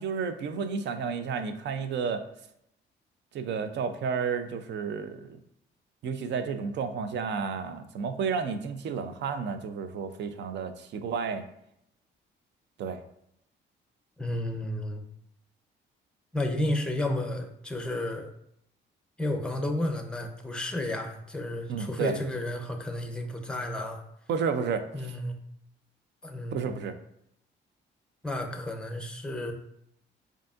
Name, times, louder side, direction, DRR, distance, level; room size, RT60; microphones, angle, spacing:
voice 1, 0.0-2.2 3.3-5.4 6.0-11.4 12.8-13.0 21.7-22.2 24.3-24.8 26.5-26.9, right 6 dB, 65° right, 9 dB, 0.4 m, -31 dB
voice 2, 14.2-15.0 16.3-18.3 19.2-24.0 24.9-25.4 26.2-26.8 28.2-29.5, left 1 dB, 5° left, 4 dB, 0.6 m, -32 dB
4.8 x 2.7 x 2.4 m, 0.75 s
cardioid pair, 90°, 20 cm